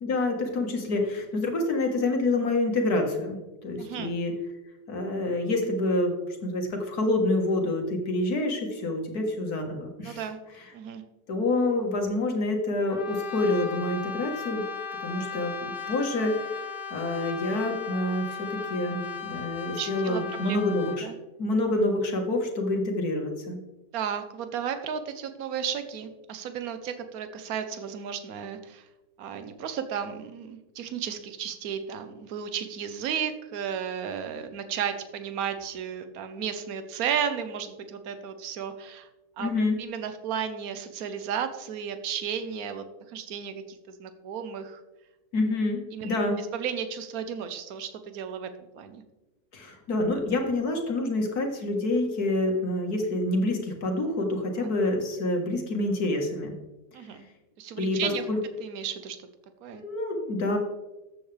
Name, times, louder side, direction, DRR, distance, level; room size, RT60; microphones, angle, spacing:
voice 1, 0.0-3.4 3.6-4.3 4.9-6.1 6.4-10.2 11.3-14.6 15.0-16.6 16.9-21.1 21.4-23.6 39.4-39.8 45.3-46.4 49.5-56.5 57.8-58.4 59.7-60.6, left 2 dB, 55° left, 2 dB, 2.0 m, -27 dB
voice 2, 3.8-4.1 10.0-10.4 10.7-11.0 19.7-20.6 21.0-21.1 23.9-28.8 29.2-39.1 39.4-39.5 39.8-44.8 45.9-48.5 48.7-49.0 56.9-57.3 57.6-58.2 58.6-59.2 59.6-59.8, right 8 dB, 60° right, 9 dB, 1.3 m, -34 dB
Brass instrument, 12.9-21.1, left 5 dB, 40° left, 0.9 m, -37 dB
13.5 x 8.1 x 3.4 m, 1.0 s
omnidirectional pair, 2.0 m